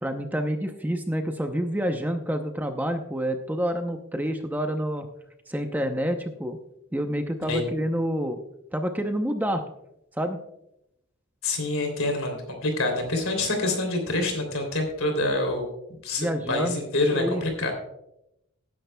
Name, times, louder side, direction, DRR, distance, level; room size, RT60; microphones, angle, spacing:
voice 1, 0.0-5.1 5.5-6.6 6.9-8.4 8.7-9.6 10.2-10.4 16.2-16.8 17.1-17.4, equal, 10° right, 5 dB, 0.6 m, -28 dB
voice 2, 11.4-15.7 16.0-17.7, left 2 dB, 70° left, 4 dB, 3.1 m, -26 dB
18.5 x 10.5 x 2.2 m, 0.83 s
head